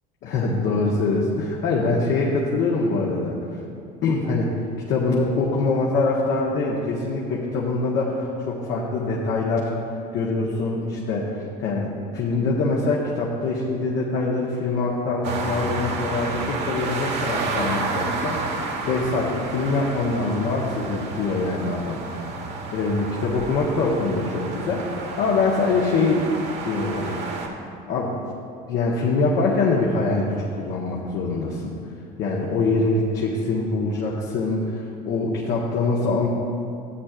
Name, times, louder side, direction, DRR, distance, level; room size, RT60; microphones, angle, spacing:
voice 1, 0.2-3.3 4.0-4.5 4.9-9.7 10.1-22.0 22.7-26.2 26.6-27.2 27.9-28.3 28.7-31.7 32.2-36.3, left 3 dB, 60° left, -4 dB, 1.4 m, -24 dB
sound 1, 15.2-27.5, right 3 dB, 55° right, 1.4 m, -30 dB
14.0 x 8.5 x 2.5 m, 2.4 s
hypercardioid pair, 70°, 21 cm